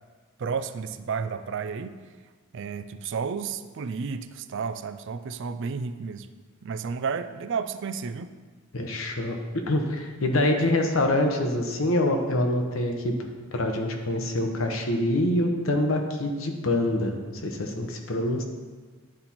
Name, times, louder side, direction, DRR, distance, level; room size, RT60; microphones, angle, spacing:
voice 1, 0.4-2.0 2.5-6.3 6.6-8.3, right 5 dB, 65° right, 11 dB, 0.4 m, -32 dB
voice 2, 8.7-18.4, left 1 dB, 80° left, 3 dB, 0.9 m, -25 dB
10.5 x 4.3 x 4.2 m, 1.4 s
head